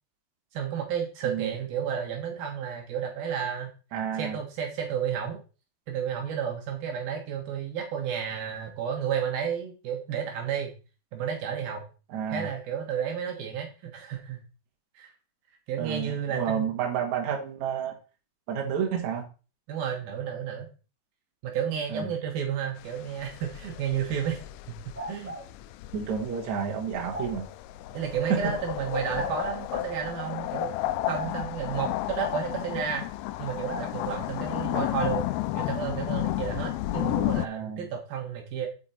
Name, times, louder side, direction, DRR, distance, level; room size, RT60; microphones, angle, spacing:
voice 1, 0.5-3.7 4.1-5.4 5.9-10.7 11.1-11.8 12.3-14.4 14.9-15.1 15.7-16.7 19.7-20.7 21.4-24.4 24.7-24.8 25.1-25.4 27.9-30.7 31.1-33.1 33.4-35.3 35.6-38.7, right 8 dB, 70° right, 2 dB, 3.0 m, -32 dB
voice 2, 3.9-4.4 12.1-12.5 15.8-18.0 18.5-19.3 21.9-22.1 25.9-27.5 28.3-28.4 37.4-37.9, right 7 dB, 55° right, 1 dB, 2.6 m, -30 dB
sound 1, 22.8-37.5, left 16 dB, 80° left, 2.2 m, -33 dB
sound 2, 24.9-25.5 27.1-27.3 29.1-29.7 31.1-31.3 33.6-33.9, equal, 10° right, 0.8 m, -36 dB
8.5 x 6.9 x 4.3 m, 0.34 s
omnidirectional pair, 4.7 m